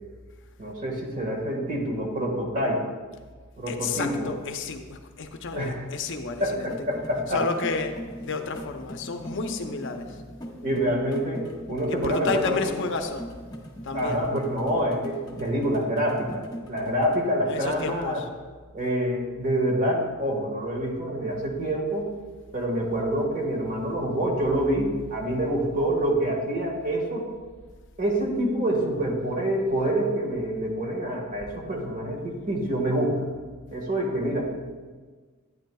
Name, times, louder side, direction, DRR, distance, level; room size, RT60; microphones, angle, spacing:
voice 1, 0.6-2.8 3.6-4.3 5.5-5.9 6.4-7.4 10.6-12.7 13.9-18.2 18.7-22.1 22.5-27.3 28.0-33.3 33.7-34.5, right 1 dB, 40° right, 0 dB, 1.6 m, -26 dB
voice 2, 3.7-10.2 11.9-13.3 13.8-14.3 17.5-18.3, left 4 dB, 55° left, 6 dB, 0.6 m, -31 dB
sound 1, 6.6-17.2, equal, 20° left, 1.0 m, -40 dB
11.5 x 9.4 x 2.3 m, 1.4 s
head